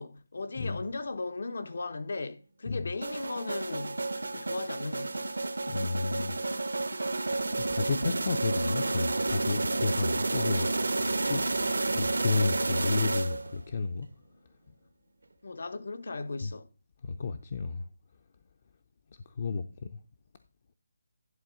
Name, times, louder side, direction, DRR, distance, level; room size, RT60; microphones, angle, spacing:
voice 1, 0.0-5.3 15.4-16.6, left 3 dB, 70° left, 1.1 m, -37 dB
sound 1, 3.0-13.7, right 2 dB, 90° right, 0.9 m, -30 dB
voice 2, 5.7-6.3 7.7-10.7 11.2-11.5 11.9-14.1 16.4-16.5 17.0-17.8 19.4-20.0, left 4 dB, 45° left, 0.6 m, -31 dB
11.0 x 3.8 x 6.2 m
figure-of-eight pair, 165°, 0 cm